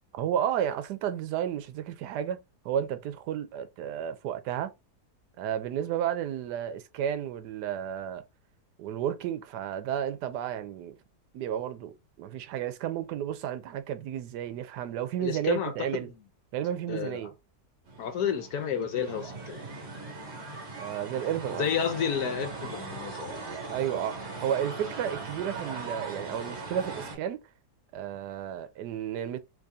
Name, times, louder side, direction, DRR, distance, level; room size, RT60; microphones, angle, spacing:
voice 1, 0.1-4.7 5.4-8.2 8.8-11.0 11.3-16.1 16.5-17.3 20.8-21.7 23.7-27.4 27.9-29.4, right 10 dB, 90° right, 1.2 m, -32 dB
voice 2, 15.2-15.7 16.1-16.2 16.9-17.3 18.0-19.6 21.5-23.4, left 7 dB, 70° left, 1.3 m, -31 dB
sound 1, 17.9-27.2, right 3 dB, 45° right, 1.3 m, -39 dB
3.2 x 2.7 x 3.4 m
omnidirectional pair, 1.7 m